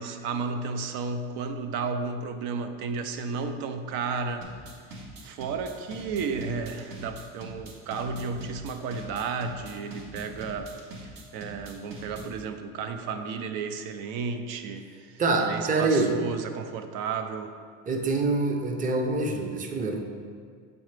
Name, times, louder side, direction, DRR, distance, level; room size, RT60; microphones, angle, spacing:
voice 1, 0.0-4.5 5.2-10.7 11.3-17.5, right 5 dB, 80° right, 8 dB, 0.6 m, -33 dB
sound 1, 4.4-12.4, right 1 dB, 65° right, 1.1 m, -42 dB
voice 2, 15.2-16.2 17.9-20.0, right 3 dB, 25° right, 4 dB, 0.6 m, -25 dB
7.6 x 4.0 x 3.2 m, 2.1 s
cardioid pair, 110°, 34 cm